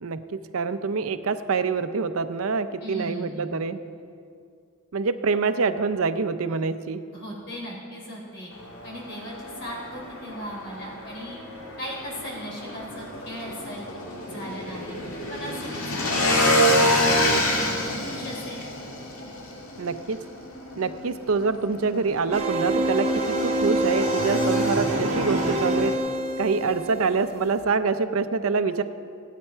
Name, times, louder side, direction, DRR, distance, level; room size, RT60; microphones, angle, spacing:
voice 1, 0.0-3.8 4.9-7.0 19.8-20.2 20.8-25.9 26.4-28.8, right 4 dB, 75° right, 11 dB, 0.6 m, -26 dB
voice 2, 2.8-3.6 7.1-8.5 8.8-11.4 11.8-13.9 14.3-15.0 15.3-17.3 17.6-18.6, equal, 60° left, -3 dB, 3.5 m, -38 dB
Motorcycle / Engine, 8.5-26.0, left 1 dB, 75° left, 1.9 m, -28 dB
sound 1, 22.3-27.5, right 1 dB, 35° right, 1.2 m, -26 dB
16.5 x 9.2 x 4.6 m, 2.3 s
head